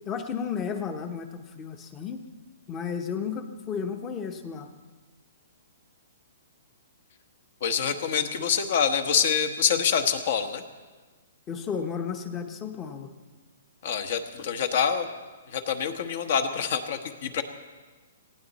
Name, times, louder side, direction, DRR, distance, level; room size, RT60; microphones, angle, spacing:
voice 1, 0.0-2.2 2.7-4.7 11.5-13.1, left 6 dB, 15° left, 7 dB, 0.9 m, -33 dB
voice 2, 7.6-10.6 13.8-15.1 15.5-17.4, left 7 dB, 50° left, 9 dB, 1.2 m, -26 dB
19.0 x 16.0 x 4.2 m, 1.3 s
hypercardioid pair, 165°, 0 cm